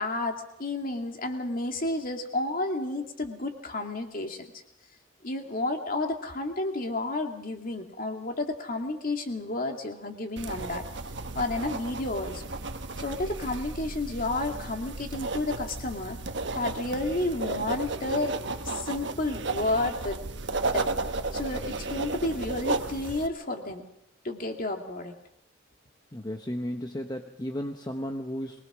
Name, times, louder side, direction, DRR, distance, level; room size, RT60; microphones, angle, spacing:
voice 1, 0.0-4.5 5.2-10.8 11.3-12.4 13.0-16.2 16.5-18.4 18.6-20.2 20.7-20.9 21.3-23.8 24.2-25.1, left 2 dB, 45° left, 4 dB, 2.4 m, -31 dB
sound 1, 10.4-23.3, right 3 dB, 65° right, 1.2 m, -34 dB
voice 2, 26.1-28.6, equal, 20° left, 4 dB, 1.0 m, -34 dB
23.0 x 20.0 x 6.2 m, 0.81 s
head